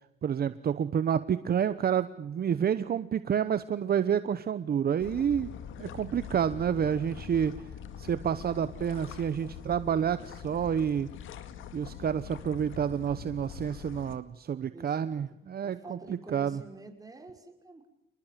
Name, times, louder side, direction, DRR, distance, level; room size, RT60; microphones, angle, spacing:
voice 1, 0.2-5.5 5.8-7.7 8.0-11.1 11.7-16.6, right 8 dB, 50° right, 13 dB, 1.1 m, -29 dB
sound 1, 5.0-14.2, left 8 dB, 80° left, 2.2 m, -44 dB
voice 2, 14.7-15.2 15.6-17.9, right 3 dB, 20° right, 4 dB, 5.6 m, -48 dB
28.0 x 20.5 x 7.6 m, 0.82 s
cardioid pair, 90°, 20 cm